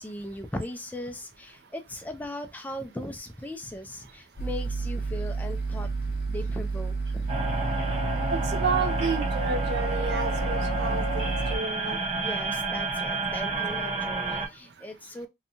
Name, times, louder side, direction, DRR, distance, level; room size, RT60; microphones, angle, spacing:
voice 1, 0.0-7.3 12.2-15.3, left 1 dB, 10° left, 0.3 m, -38 dB
sound 1, 4.4-11.6, right 4 dB, 60° left, 0.5 m, -30 dB
sound 2, 7.3-14.5, right 2 dB, 35° right, 0.7 m, -30 dB
voice 2, 8.3-11.2 11.5-12.0, right 5 dB, 75° right, 0.5 m, -30 dB
2.7 x 2.1 x 2.7 m
head